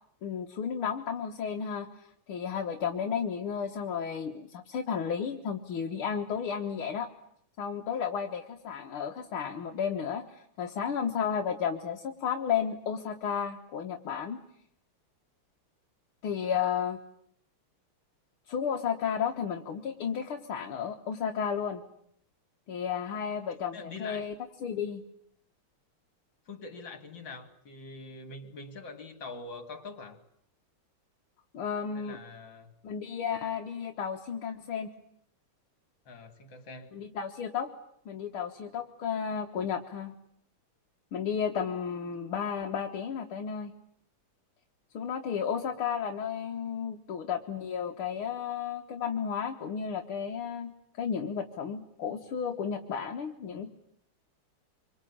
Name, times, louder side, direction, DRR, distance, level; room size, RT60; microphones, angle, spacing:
voice 1, 0.2-7.1 7.6-14.4 16.2-17.0 18.5-21.8 22.7-25.0 31.5-32.2 32.8-34.9 36.9-37.7 38.1-40.1 41.1-43.7 44.9-53.7, left 7 dB, 75° left, 3 dB, 2.2 m, -33 dB
voice 2, 23.7-24.3 26.5-30.2 32.0-32.7 36.1-36.9, left 3 dB, 60° left, 9 dB, 3.3 m, -44 dB
26.0 x 24.5 x 8.7 m, 0.68 s
omnidirectional pair, 2.4 m